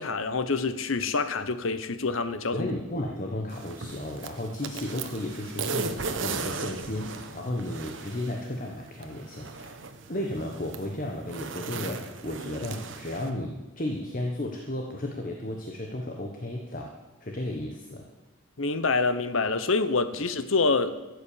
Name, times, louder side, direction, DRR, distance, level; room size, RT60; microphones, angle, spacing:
voice 1, 0.0-2.7 18.6-20.9, left 4 dB, 75° left, 12 dB, 1.0 m, -26 dB
voice 2, 2.5-9.7 10.1-17.0 17.2-18.1, left 1 dB, 40° left, 2 dB, 1.3 m, -34 dB
sound 1, 3.5-13.3, right 4 dB, 65° right, 1.1 m, -37 dB
14.0 x 8.2 x 8.5 m, 1.1 s
head